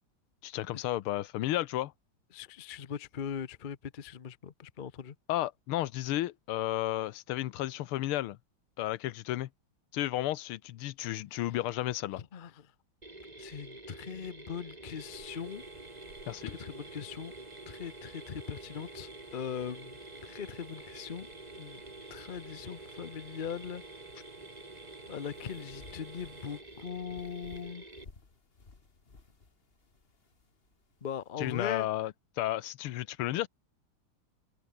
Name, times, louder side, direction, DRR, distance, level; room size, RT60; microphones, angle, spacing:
voice 1, 0.4-1.9 5.3-8.4 8.8-9.5 9.9-12.2 16.3-16.5 31.4-32.1 32.4-33.5, left 14 dB, 90° left, 1.7 m, -33 dB
voice 2, 2.3-5.1 12.2-12.7 13.4-15.6 16.5-17.3 17.7-21.3 21.6-21.8 22.1-23.8 25.1-27.8 31.0-31.9, left 7 dB, 60° left, 0.5 m, -40 dB
Mechanisms, 13.0-28.0, right 2 dB, 20° right, 3.1 m, -48 dB
sound 1, 14.9-26.6, right 4 dB, 70° right, 4.7 m, -54 dB
sound 2, 25.0-31.4, left 4 dB, 30° left, 2.1 m, -57 dB
omnidirectional pair, 2.3 m